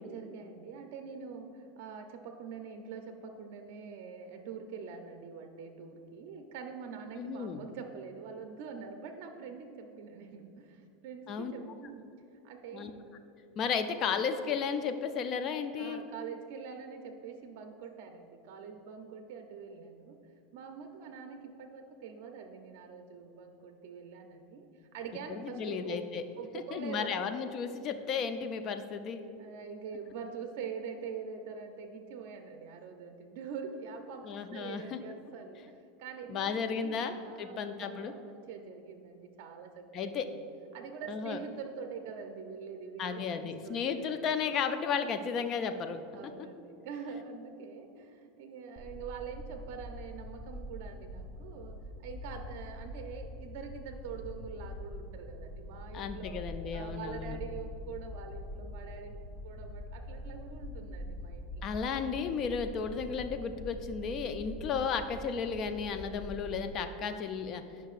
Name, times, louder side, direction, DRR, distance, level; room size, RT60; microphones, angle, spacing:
voice 1, 0.0-12.1 12.4-13.0 15.8-20.2 20.5-26.1 26.4-27.3 29.4-40.4 40.7-44.2 46.1-56.4 56.7-61.7, right 6 dB, 65° right, 5 dB, 0.5 m, -44 dB
voice 2, 7.2-7.6 11.3-11.5 12.7-12.9 13.6-16.0 25.3-26.2 26.7-29.2 34.2-35.0 36.3-38.1 39.9-40.3 41.1-41.4 43.0-46.0 55.9-57.4 61.6-67.6, left 6 dB, 35° left, 9 dB, 0.4 m, -34 dB
sound 1, 48.8-66.7, left 1 dB, 15° left, 0.7 m, -44 dB
10.0 x 5.6 x 2.4 m, 2.6 s
supercardioid pair, 140°, 0 cm